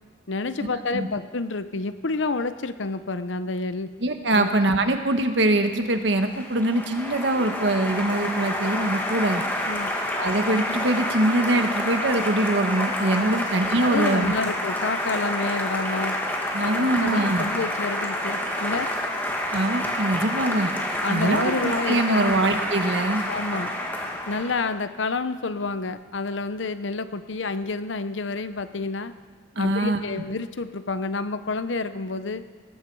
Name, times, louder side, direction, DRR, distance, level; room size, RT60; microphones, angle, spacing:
voice 1, 0.3-3.9 4.3-4.5 9.7-9.9 13.1-13.4 13.8-16.1 16.6-18.9 21.0-22.3 23.3-23.7 24.3-29.1 29.6-32.4, left 3 dB, 75° left, 12 dB, 0.8 m, -29 dB
voice 2, 4.0-9.4 10.2-14.3 16.5-17.5 19.5-20.7 21.1-23.2 29.5-30.0, right 1 dB, 65° right, 7 dB, 1.3 m, -23 dB
Applause, 5.8-24.7, left 1 dB, 10° left, 2.0 m, -28 dB
19.5 x 14.5 x 4.8 m, 1.4 s
head